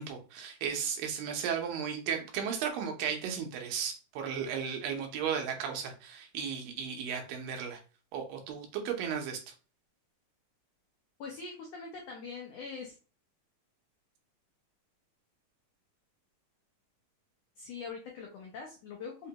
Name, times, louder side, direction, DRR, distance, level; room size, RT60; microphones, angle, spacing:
voice 1, 0.0-7.8 8.1-9.4, right 7 dB, 85° right, 4 dB, 2.5 m, -35 dB
voice 2, 11.2-13.0 17.6-19.3, left 5 dB, 85° left, 0 dB, 1.4 m, -43 dB
5.6 x 2.2 x 2.8 m, 0.34 s
omnidirectional pair, 3.9 m